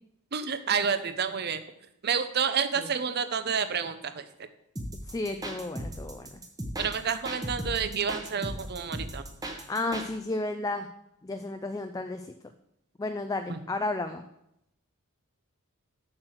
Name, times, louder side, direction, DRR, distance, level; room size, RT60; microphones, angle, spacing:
voice 1, 0.3-1.6 2.0-4.3 6.8-9.2 13.5-13.6, right 6 dB, 45° right, 11 dB, 0.6 m, -29 dB
sound 1, 4.8-10.1, right 1 dB, 15° right, 1.0 m, -36 dB
voice 2, 5.1-6.3 9.7-10.9 11.2-12.3 13.0-14.2, left 2 dB, 15° left, 7 dB, 0.3 m, -32 dB
7.3 x 6.5 x 6.3 m, 0.80 s
head